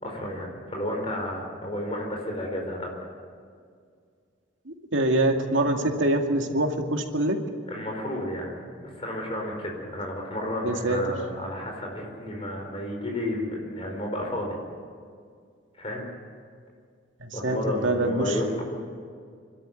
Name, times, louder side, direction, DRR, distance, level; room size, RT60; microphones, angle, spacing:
voice 1, 0.0-3.0 7.7-14.6 15.8-16.1 17.3-18.6, left 1 dB, 30° left, 0 dB, 4.7 m, -32 dB
voice 2, 4.7-7.4 10.6-11.0 17.2-18.4, right 1 dB, 85° right, 3 dB, 2.3 m, -25 dB
26.0 x 12.5 x 9.2 m, 2.1 s
head